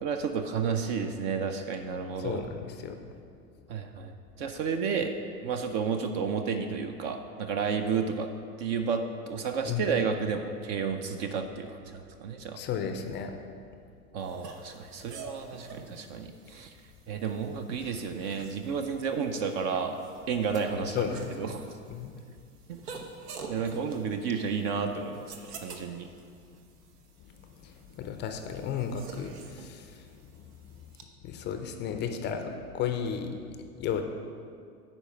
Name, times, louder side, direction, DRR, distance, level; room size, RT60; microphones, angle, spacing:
voice 1, 0.0-2.5 3.7-5.1 5.4-8.3 8.6-12.6 14.1-16.7 17.1-20.0 20.3-21.8 22.7-22.8 23.5-25.3 25.6-26.1, right 6 dB, 35° right, 6 dB, 0.4 m, -31 dB
voice 2, 2.2-3.0 9.7-9.9 12.6-13.3 20.9-21.3 21.9-22.1 27.6-30.1 31.2-34.0, left 7 dB, 25° left, 5 dB, 0.5 m, -34 dB
sound 1, 14.2-31.0, right 4 dB, 75° right, 1.1 m, -48 dB
9.8 x 4.3 x 5.6 m, 2.3 s
hypercardioid pair, 100°, 46 cm